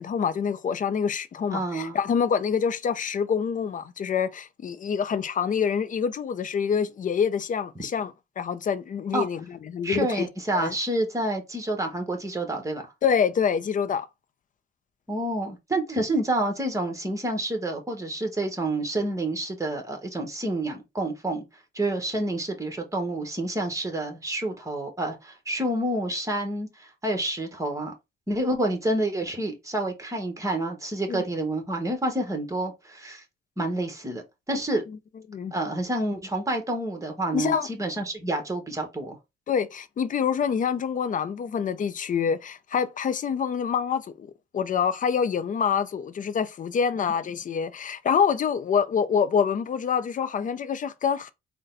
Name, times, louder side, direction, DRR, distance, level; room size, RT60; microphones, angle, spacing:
voice 1, 0.0-10.3 10.5-10.7 13.0-14.1 31.1-31.3 35.3-35.5 37.3-37.7 39.5-51.3, left 7 dB, 40° left, 0.5 m, -26 dB
voice 2, 1.5-1.9 9.1-9.3 9.8-12.9 15.1-21.4 21.7-27.9 28.3-33.2 33.6-34.8 35.5-39.2, right 1 dB, 15° right, 1.3 m, -28 dB
3.9 x 2.2 x 3.9 m
cardioid pair, 90°, 20 cm